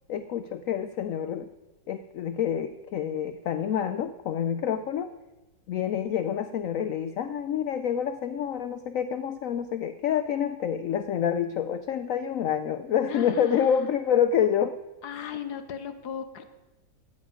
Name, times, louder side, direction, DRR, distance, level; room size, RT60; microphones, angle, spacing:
voice 1, 0.1-1.5 1.9-5.1 5.7-14.8 15.2-15.3, left 8 dB, 85° left, 11 dB, 0.7 m, -27 dB
voice 2, 13.1-13.9 15.0-16.5, left 7 dB, 65° left, 10 dB, 1.3 m, -37 dB
13.5 x 9.6 x 5.0 m, 1.1 s
omnidirectional pair, 2.0 m